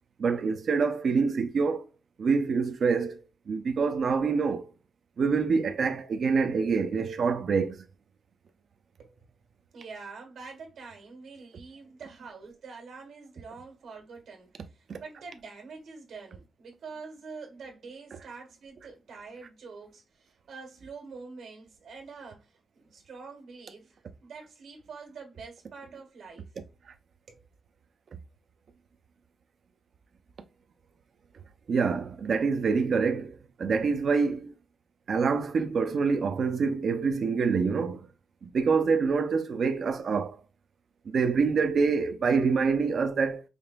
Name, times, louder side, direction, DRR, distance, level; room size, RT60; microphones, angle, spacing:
voice 1, 0.2-1.9 2.2-4.7 5.2-7.9 14.9-15.0 31.7-34.5 35.1-38.0 38.4-40.4 41.1-43.4, right 5 dB, 50° right, 0.4 m, -26 dB
voice 2, 9.7-26.5 27.3-27.4, right 4 dB, 80° right, 1.6 m, -46 dB
5.0 x 2.9 x 2.2 m
wide cardioid pair, 155°, 0 cm